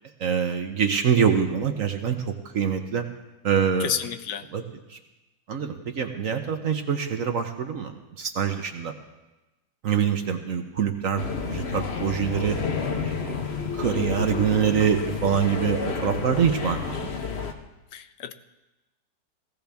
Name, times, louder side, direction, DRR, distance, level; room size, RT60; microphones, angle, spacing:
voice 1, 0.2-3.1 3.4-3.9 4.5-4.6 4.9-5.0 5.5-8.9 9.8-12.6 13.0-13.4 13.7-16.9, right 7 dB, 55° right, 6 dB, 1.1 m, -25 dB
voice 2, 3.8-4.5 17.9-18.3, left 9 dB, 75° left, 11 dB, 1.3 m, -30 dB
sound 1, 11.2-17.5, left 5 dB, 45° left, 1.0 m, -30 dB
17.5 x 16.0 x 3.5 m, 1.0 s
omnidirectional pair, 1.9 m